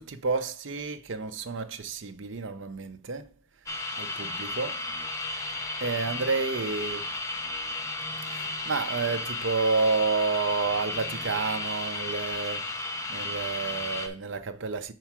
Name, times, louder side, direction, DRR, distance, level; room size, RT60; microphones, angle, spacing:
voice 1, 0.0-3.3 3.9-4.8 5.8-7.0 8.3-12.8 13.1-14.9, right 4 dB, 60° right, 0.6 m, -30 dB
sound 1, 3.7-14.1, left 2 dB, 15° left, 0.5 m, -34 dB
4.6 x 4.6 x 5.9 m
head